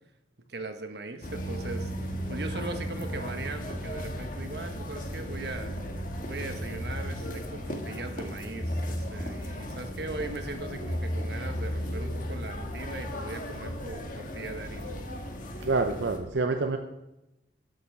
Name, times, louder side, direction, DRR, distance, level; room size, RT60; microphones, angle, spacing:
voice 1, 0.5-5.7 6.2-15.0, right 2 dB, 70° right, 7 dB, 1.2 m, -39 dB
sound 1, 1.2-16.2, equal, 50° left, 1.4 m, -35 dB
voice 2, 15.6-16.8, right 3 dB, 85° right, 5 dB, 0.7 m, -27 dB
11.5 x 5.5 x 6.7 m, 0.95 s
head